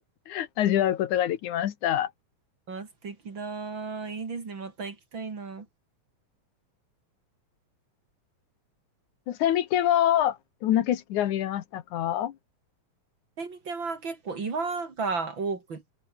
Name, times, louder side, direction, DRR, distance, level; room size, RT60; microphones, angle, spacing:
voice 1, 0.3-2.1 9.3-12.3, left 11 dB, 75° left, 2.7 m, -25 dB
voice 2, 2.7-5.7 13.4-15.8, right 4 dB, 40° right, 3.3 m, -34 dB
omnidirectional pair, 3.5 m